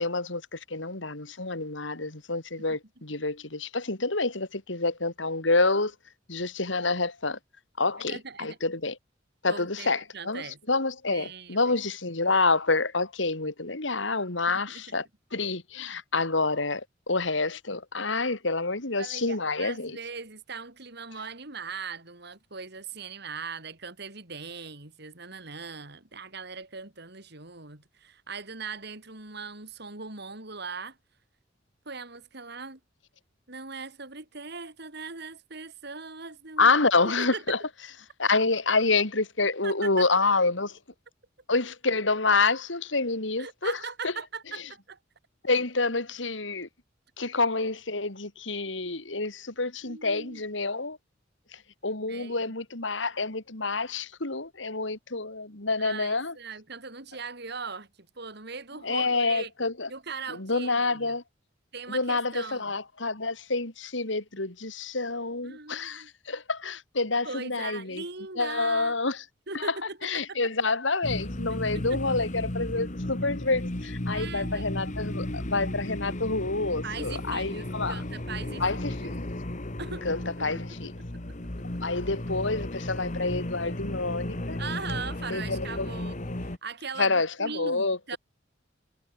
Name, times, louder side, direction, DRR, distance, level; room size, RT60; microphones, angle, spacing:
voice 1, 0.0-5.9 6.3-7.4 7.8-9.0 9.4-15.0 15.3-20.0 36.6-37.6 38.2-40.7 41.5-43.8 45.4-46.7 47.2-51.0 51.8-56.3 58.8-59.9 60.4-61.2 61.9-68.0 68.4-69.2 69.5-69.7 70.0-78.0 78.6-79.3 80.0-80.9 81.8-84.6 85.3-85.9 87.0-88.2, left 3 dB, 75° left, 3.2 m, -28 dB
voice 2, 8.1-8.6 9.5-10.6 11.1-11.6 14.5-15.0 19.0-31.0 31.8-32.8 33.5-36.8 37.0-37.6 39.6-40.1 43.4-45.0 49.8-50.4 52.1-52.5 55.8-59.5 59.9-61.2 61.7-62.7 65.4-66.1 67.2-69.0 69.5-70.5 71.7-72.0 74.1-74.7 76.8-79.1 79.8-80.5 84.6-88.2, right 4 dB, 60° right, 4.4 m, -40 dB
sound 1, 71.0-86.6, left 1 dB, 40° left, 1.9 m, -34 dB
head